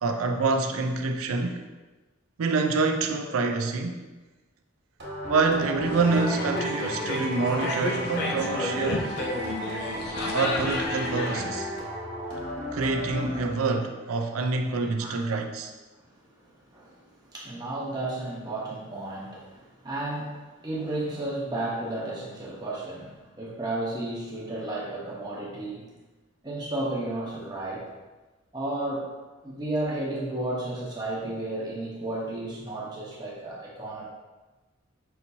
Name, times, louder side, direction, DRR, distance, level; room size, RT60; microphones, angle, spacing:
voice 1, 0.0-1.6 2.4-4.0 5.3-9.1 10.3-11.7 12.7-15.7, right 4 dB, 90° right, 4 dB, 0.5 m, -26 dB
sound 1, 5.0-13.9, equal, 50° right, 1.3 m, -34 dB
sound 2, 5.8-11.5, left 2 dB, 50° left, 0.5 m, -32 dB
voice 2, 16.7-17.0 17.3-25.9 26.4-27.9 28.5-29.1 29.4-34.1, right 2 dB, 20° right, -5 dB, 0.9 m, -33 dB
5.7 x 2.9 x 2.7 m, 1.2 s
head